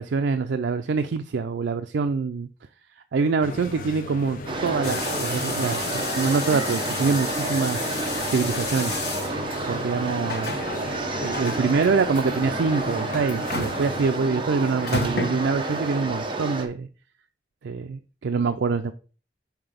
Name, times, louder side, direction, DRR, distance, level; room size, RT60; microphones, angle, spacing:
voice 1, 0.0-2.5 3.1-8.9 9.7-10.6 11.2-16.9 17.6-18.9, right 4 dB, 80° right, 8 dB, 0.4 m, -25 dB
sound 1, 3.4-14.1, left 2 dB, 50° left, 0.6 m, -36 dB
sound 2, 4.5-16.7, right 2 dB, 25° right, 0.8 m, -30 dB
sound 3, 4.8-16.0, left 4 dB, 65° left, 1.2 m, -33 dB
5.8 x 4.8 x 5.0 m, 0.37 s
head